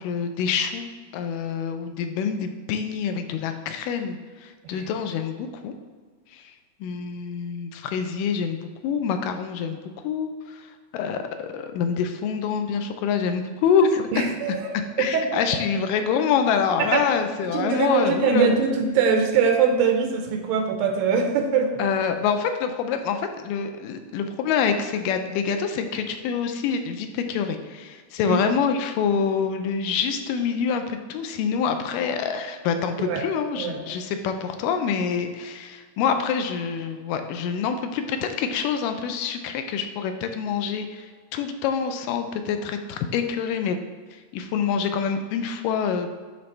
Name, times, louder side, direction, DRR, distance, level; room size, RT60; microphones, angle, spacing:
voice 1, 0.0-5.7 6.3-6.5 6.8-10.7 10.9-14.2 15.0-18.5 21.8-43.8 44.3-46.1, left 6 dB, 80° left, 7 dB, 2.1 m, -26 dB
voice 2, 14.1-14.7 15.0-15.6 16.8-17.1 17.5-21.7 28.3-28.4 33.0-33.2 33.6-33.8, right 5 dB, 90° right, 4 dB, 2.5 m, -22 dB
11.0 x 4.2 x 3.2 m, 1.5 s
omnidirectional pair, 4.1 m